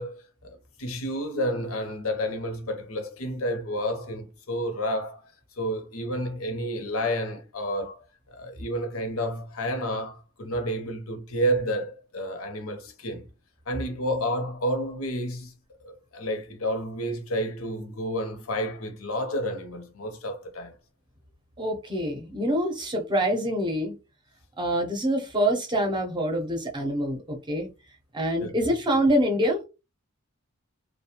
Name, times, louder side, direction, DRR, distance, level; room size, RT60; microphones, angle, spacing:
voice 1, 0.0-5.2 5.6-8.0 8.3-13.3 13.7-15.5 15.8-20.7 28.4-28.7, equal, 85° left, 0.7 m, -30 dB
voice 2, 21.6-23.9 24.6-27.7 28.1-29.6, equal, 20° right, 0.6 m, -25 dB
2.4 x 2.1 x 2.8 m
head